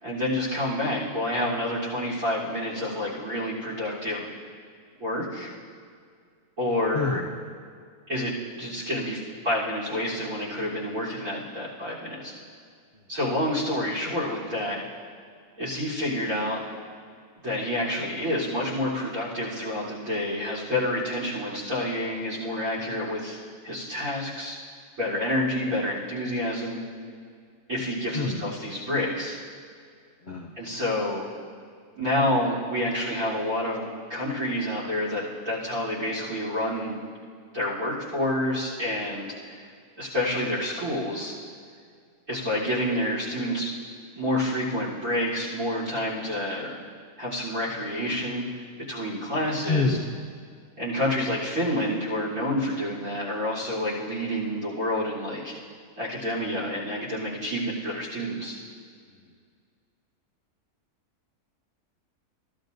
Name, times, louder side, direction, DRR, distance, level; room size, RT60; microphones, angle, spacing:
voice 1, 0.0-4.3 5.0-5.5 6.6-7.2 8.1-12.3 13.1-14.9 15.6-16.6 17.4-23.4 23.6-24.6 25.0-26.8 27.7-29.4 30.6-31.3 31.9-37.0 37.5-39.6 40.0-41.3 42.3-43.7 44.1-46.8 47.2-50.0 50.8-55.5 56.0-58.6, left 1 dB, 55° right, -9 dB, 4.1 m, -28 dB
voice 2, 6.9-7.3 12.9-13.0 28.1-28.5 30.2-30.6 49.7-50.1, left 3 dB, 50° left, -1 dB, 0.6 m, -27 dB
16.0 x 12.5 x 2.6 m, 2.1 s
omnidirectional pair, 1.7 m